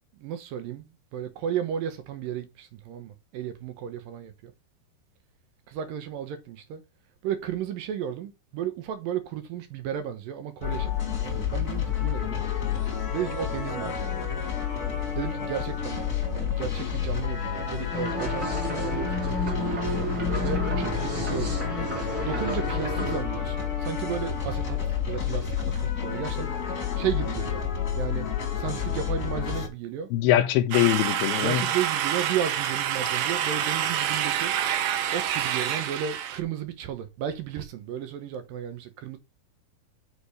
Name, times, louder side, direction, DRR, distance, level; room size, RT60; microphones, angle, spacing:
voice 1, 0.2-4.5 5.7-6.8 7.2-12.4 13.1-14.4 15.2-19.8 20.4-21.8 22.2-24.8 25.1-26.5 27.0-27.6 28.0-28.3 28.5-30.1 31.4-34.5 35.1-39.2, right 9 dB, 70° right, 2.5 m, -34 dB
sound 1, 10.6-29.7, left 8 dB, 35° left, 1.7 m, -30 dB
sound 2, 17.9-23.2, right 1 dB, 25° right, 2.5 m, -31 dB
voice 2, 30.1-31.6, left 13 dB, 85° left, 2.5 m, -22 dB
sound 3, 30.7-36.4, right 10 dB, 90° right, 3.1 m, -27 dB
6.7 x 5.2 x 6.5 m
omnidirectional pair, 4.5 m